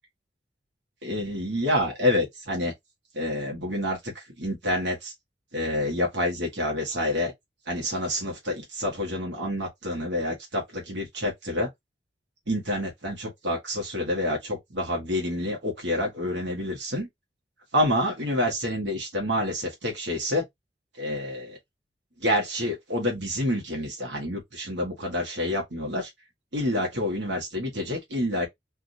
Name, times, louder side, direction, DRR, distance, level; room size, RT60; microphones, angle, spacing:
voice 1, 1.0-2.7 3.1-5.1 5.5-7.3 7.7-11.7 12.5-17.1 17.7-20.4 21.0-21.6 22.2-26.1 26.5-28.5, left 1 dB, 80° right, 1.4 m, -28 dB
3.5 x 2.5 x 2.7 m
head